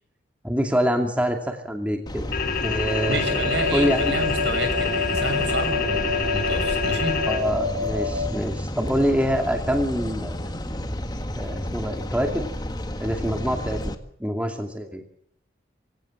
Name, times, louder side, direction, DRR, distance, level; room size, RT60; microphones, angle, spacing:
voice 1, 0.4-2.3 2.6-4.1 7.3-10.3 11.4-12.5 13.0-13.9 14.2-15.0, equal, 5° right, 3 dB, 2.4 m, -25 dB
sound 1, 2.1-13.9, left 1 dB, 20° left, 1.7 m, -31 dB
sound 2, 2.3-7.4, left 6 dB, 55° left, 3.2 m, -27 dB
sound 3, 2.9-8.3, left 3 dB, 90° right, 3.4 m, -29 dB
voice 2, 3.1-7.2, right 2 dB, 75° right, 8 dB, 6.3 m, -29 dB
24.5 x 17.0 x 7.7 m, 0.72 s
head